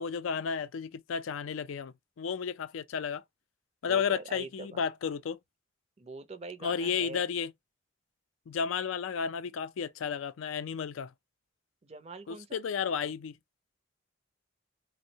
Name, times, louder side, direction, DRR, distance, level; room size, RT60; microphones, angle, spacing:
voice 1, 0.0-3.2 3.8-5.4 6.6-7.5 8.5-11.1 12.3-13.4, left 6 dB, 80° left, 0.4 m, -33 dB
voice 2, 3.8-4.8 6.0-7.3 11.8-12.6, right 3 dB, 30° right, 0.5 m, -44 dB
3.4 x 2.1 x 2.6 m
head